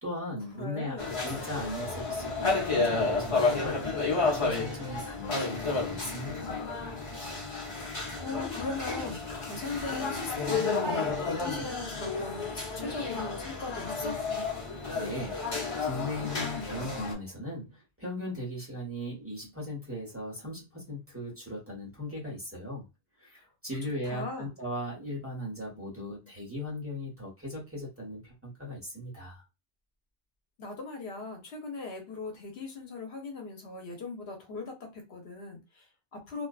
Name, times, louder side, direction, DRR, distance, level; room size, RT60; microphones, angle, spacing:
voice 1, 0.0-1.0 1.2-3.8 4.1-6.7 14.9-22.9 23.2-29.4, left 1 dB, 15° right, 1.1 m, -38 dB
voice 2, 0.5-1.1 8.2-14.2 23.4-23.5 24.0-24.5 30.6-36.5, left 3 dB, 70° left, 1.1 m, -39 dB
sound 1, 1.0-17.1, left 3 dB, 35° left, 0.9 m, -31 dB
2.5 x 2.4 x 2.3 m
omnidirectional pair, 1.1 m